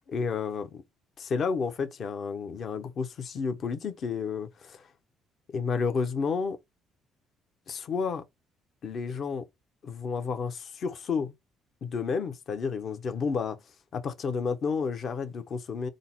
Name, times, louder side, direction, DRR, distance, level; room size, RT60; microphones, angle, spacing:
voice 1, 0.1-0.8 1.2-4.8 5.5-6.6 7.7-8.2 8.8-9.4 9.8-11.3 11.8-13.6 13.9-15.9, left 5 dB, 55° left, 0.8 m, -31 dB
3.8 x 2.0 x 4.2 m
supercardioid pair, 60°, 0 cm